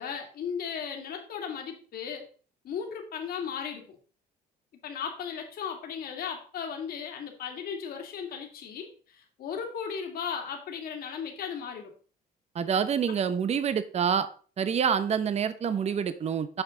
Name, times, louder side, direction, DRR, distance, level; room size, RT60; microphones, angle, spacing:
voice 1, 0.0-2.2 2.6-3.9 4.8-11.9, left 7 dB, 65° left, 3 dB, 2.5 m, -36 dB
voice 2, 12.5-14.3 14.6-16.6, right 7 dB, 40° right, 12 dB, 0.9 m, -27 dB
9.2 x 6.1 x 3.9 m, 0.39 s
cardioid pair, 110°, 17 cm